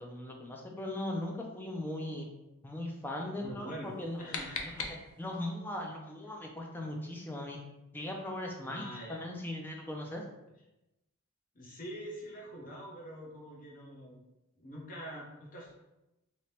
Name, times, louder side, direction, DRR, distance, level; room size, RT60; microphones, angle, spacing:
voice 1, 0.0-2.3 2.6-4.4 4.6-7.6 7.9-10.2, left 1 dB, 10° left, 0 dB, 0.4 m, -39 dB
voice 2, 3.4-4.8 8.6-9.2 11.5-14.2 14.6-15.7, equal, 40° left, -3 dB, 0.8 m, -45 dB
sound 1, 3.8-5.5, left 4 dB, 80° left, 0.5 m, -41 dB
2.9 x 2.8 x 3.2 m, 0.95 s
head